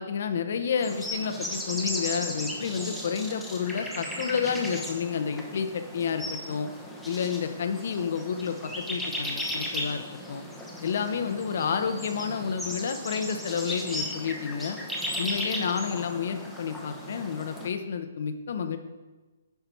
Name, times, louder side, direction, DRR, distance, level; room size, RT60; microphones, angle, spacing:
voice 1, 0.0-6.7 7.1-10.4 10.8-14.8 15.2-18.8, left 6 dB, 60° left, 8 dB, 0.8 m, -30 dB
sound 1, 0.8-17.7, left 1 dB, ahead, 1.0 m, -36 dB
9.2 x 5.7 x 4.5 m, 1.2 s
hypercardioid pair, 150°, 0 cm